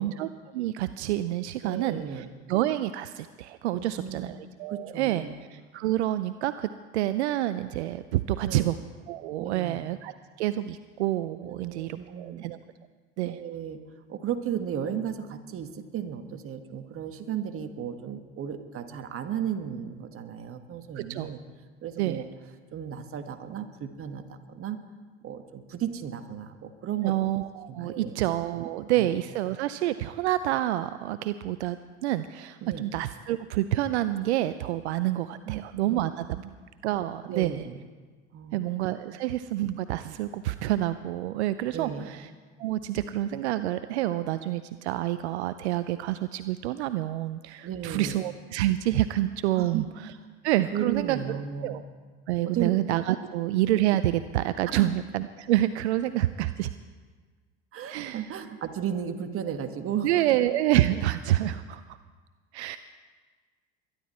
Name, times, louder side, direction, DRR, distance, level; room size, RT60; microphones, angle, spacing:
voice 1, 0.0-5.2 5.5-8.8 9.1-10.1 10.4-12.6 13.2-13.4 20.9-21.3 22.0-22.2 27.0-36.4 36.8-37.6 38.5-42.3 42.6-49.8 50.4-51.4 51.6-51.8 52.3-56.7 57.9-58.3 60.0-62.0 62.5-62.8, right 14 dB, 80° right, 13 dB, 0.6 m, -28 dB
voice 2, 1.6-2.3 3.7-4.4 4.7-5.3 8.4-8.7 9.4-9.8 11.4-12.5 13.2-13.8 14.1-21.4 21.8-22.2 22.7-24.8 25.2-27.1 27.7-28.2 29.0-29.1 32.6-32.8 35.4-36.0 36.3-36.4 37.3-37.8 38.3-38.7 41.7-42.1 47.6-48.2 49.6-49.8 50.7-51.8 52.4-52.7 54.7-54.9 57.7-60.1, right 9 dB, 40° right, 8 dB, 1.5 m, -34 dB
22.5 x 11.5 x 4.3 m, 1.5 s
hypercardioid pair, 85°, 33 cm